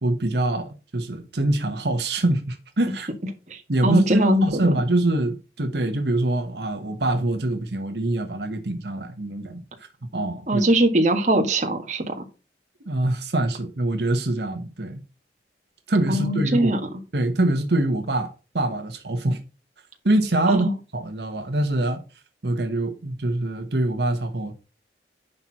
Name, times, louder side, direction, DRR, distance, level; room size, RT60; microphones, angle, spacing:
voice 1, 0.0-3.1 3.7-9.9 10.1-10.6 12.9-15.0 15.9-16.7 17.1-18.3 18.5-19.4 20.0-20.7 20.9-22.0 22.4-24.5, right 1 dB, 75° right, 1.2 m, -24 dB
voice 2, 3.5-4.8 10.5-12.1 16.1-16.8 20.5-20.7, right 1 dB, 40° right, 1.6 m, -21 dB
10.5 x 4.4 x 5.7 m
head